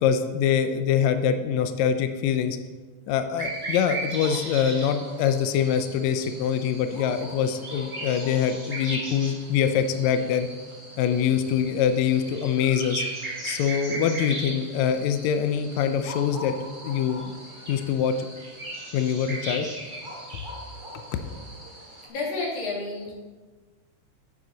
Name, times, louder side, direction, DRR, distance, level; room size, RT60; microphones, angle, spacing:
voice 1, 0.0-2.6 3.1-10.5 11.0-13.0 13.4-16.5 16.8-17.2 17.7-18.3 18.9-19.7 20.3-20.4 20.9-21.0, left 8 dB, 85° left, 8 dB, 1.6 m, -24 dB
sound 1, 3.4-22.1, right 2 dB, 85° right, 0.4 m, -38 dB
voice 2, 22.1-23.1, left 3 dB, 65° left, -3 dB, 3.5 m, -30 dB
9.6 x 8.0 x 4.0 m, 1.3 s
omnidirectional pair, 3.9 m